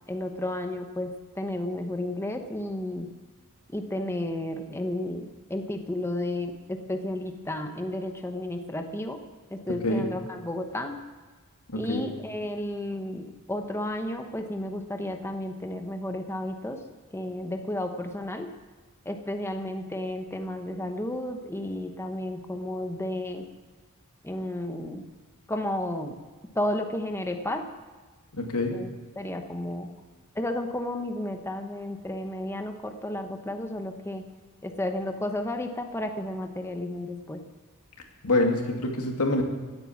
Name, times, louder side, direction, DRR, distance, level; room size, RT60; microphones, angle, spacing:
voice 1, 0.1-3.1 3.7-9.2 9.5-10.9 11.7-16.8 17.1-18.5 19.0-23.5 24.2-25.0 25.5-26.2 26.5-27.7 28.7-28.9 29.2-29.9 30.3-34.2 34.6-37.4, left 1 dB, 10° left, 5 dB, 0.9 m, -32 dB
voice 2, 9.7-10.0 11.7-12.0 28.3-28.8 38.2-39.4, left 2 dB, 90° left, 2 dB, 2.3 m, -26 dB
16.5 x 9.2 x 7.2 m, 1.3 s
head